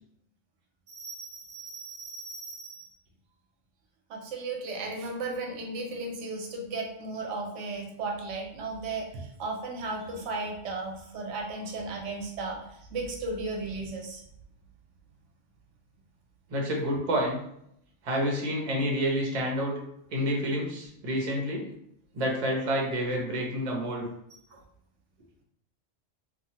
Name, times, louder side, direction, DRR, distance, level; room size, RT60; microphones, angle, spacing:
voice 1, 0.9-2.9 4.1-12.6 12.9-14.2 24.5-24.6, right 3 dB, 90° right, 1 dB, 1.0 m, -35 dB
voice 2, 16.5-17.4 18.0-19.7 20.1-21.7 22.1-24.1, equal, 40° right, -1 dB, 0.6 m, -28 dB
2.9 x 2.3 x 2.8 m, 0.74 s
omnidirectional pair, 1.2 m